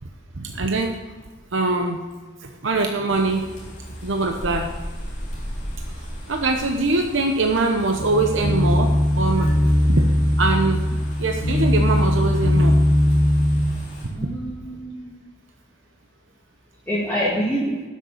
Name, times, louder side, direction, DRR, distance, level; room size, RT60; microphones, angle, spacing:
voice 1, 0.4-1.0 1.5-2.0 2.4-3.5 4.0-4.7 6.0-9.5 9.9-10.0 10.4-12.8 14.0-14.3, right 3 dB, 80° right, 4 dB, 0.9 m, -23 dB
sound 1, 3.1-14.0, equal, 35° left, 3.4 m, -37 dB
sound 2, 8.0-13.6, left 1 dB, 75° left, 2.3 m, -19 dB
voice 2, 14.2-15.3 16.9-17.7, equal, 10° left, -7 dB, 2.1 m, -26 dB
12.0 x 6.5 x 6.5 m, 1.3 s
head